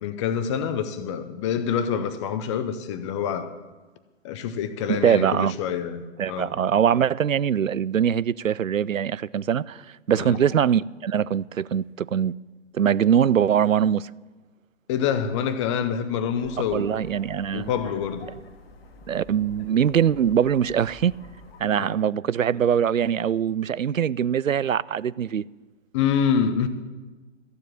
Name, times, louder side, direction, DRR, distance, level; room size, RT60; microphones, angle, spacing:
voice 1, 0.0-3.5 4.2-6.5 10.2-10.4 14.9-16.9 17.5-18.3 25.9-26.7, left 7 dB, 25° left, 0.7 m, -26 dB
voice 2, 4.9-5.5 6.2-12.4 12.7-14.1 16.6-17.7 19.1-21.2 21.6-25.4, right 8 dB, 85° right, 0.5 m, -22 dB
sound 1, 16.4-21.6, left 3 dB, 50° left, 1.6 m, -47 dB
14.0 x 7.5 x 9.1 m
figure-of-eight pair, 120°, 38 cm